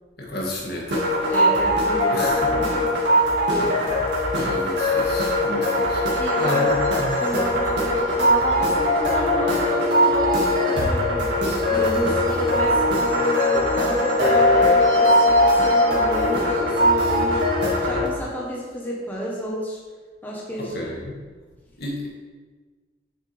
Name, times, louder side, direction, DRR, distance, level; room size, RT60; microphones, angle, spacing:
voice 1, 0.2-1.3 2.1-2.5 3.6-3.7 4.4-7.2 20.6-21.2 21.8-22.1, left 1 dB, 65° left, -3 dB, 1.8 m, -32 dB
sound 1, 0.9-18.1, left 1 dB, 85° right, 2.0 m, -20 dB
voice 2, 1.3-3.2 3.5-3.7 6.2-6.7 7.2-17.4 17.8-19.8 20.2-20.9, equal, 10° left, -4 dB, 1.1 m, -30 dB
7.3 x 6.8 x 3.4 m, 1.4 s
head